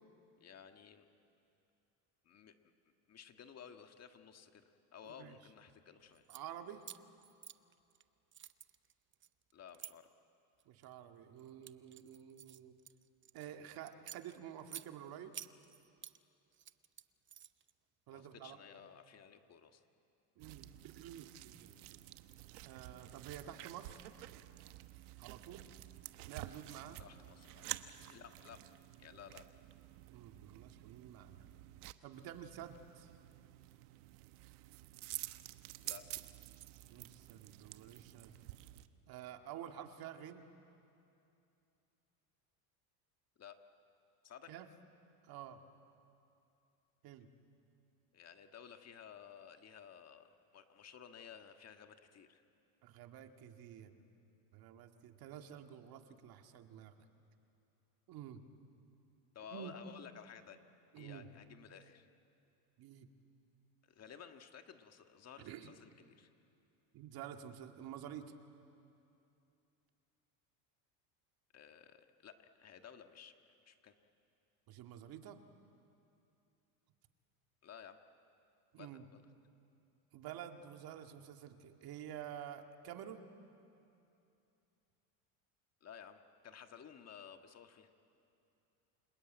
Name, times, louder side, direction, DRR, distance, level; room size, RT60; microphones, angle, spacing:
voice 1, 0.4-1.1 2.2-2.5 3.1-6.2 9.5-10.1 18.1-19.8 27.0-27.7 28.1-28.6 29.0-29.5 35.8-36.2 43.4-43.6 44.2-44.5 48.1-52.4 59.3-60.6 60.9-62.1 63.8-66.3 71.5-73.3 73.6-73.9 77.6-78.0 78.8-79.2 85.8-87.9, left 8 dB, 35° left, 7 dB, 1.6 m, -55 dB
voice 2, 5.0-5.4 6.3-6.9 10.7-12.7 13.3-15.4 18.1-18.6 20.4-22.0 22.6-24.1 25.2-25.7 26.2-27.0 30.1-31.5 32.0-33.1 36.9-38.4 39.1-40.5 44.5-44.7 45.2-45.6 47.0-47.3 52.8-53.9 54.5-56.9 58.1-58.4 59.5-59.8 60.9-61.3 62.8-63.1 65.4-65.7 66.9-68.3 74.7-75.4 78.7-79.0 80.1-83.3, right 10 dB, 55° right, 5 dB, 2.0 m, -50 dB
sound 1, 6.1-6.4 6.8-8.0 8.3-9.9 10.6-10.9 11.4-13.5 13.9-14.9 15.3-16.2 16.5-17.7, right 10 dB, 25° right, 0.7 m, -51 dB
sound 2, 20.4-38.9, right 17 dB, 80° right, 1.2 m, -50 dB
29.0 x 20.0 x 9.2 m, 2.7 s
supercardioid pair, 115°, 44 cm